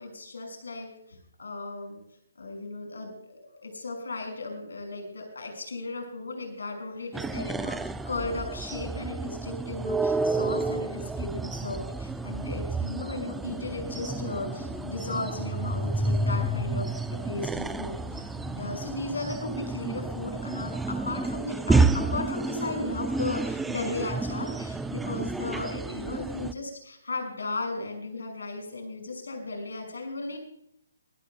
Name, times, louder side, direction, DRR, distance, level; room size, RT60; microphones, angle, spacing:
voice 1, 0.0-2.0 2.4-18.3 18.5-30.4, left 3 dB, 85° left, 3 dB, 6.1 m, -36 dB
sound 1, 7.1-26.5, right 3 dB, 5° right, 0.6 m, -30 dB
sound 2, 11.5-24.7, left 4 dB, 25° left, 5.4 m, -49 dB
24.0 x 14.0 x 2.3 m, 0.74 s
hypercardioid pair, 150°, 0 cm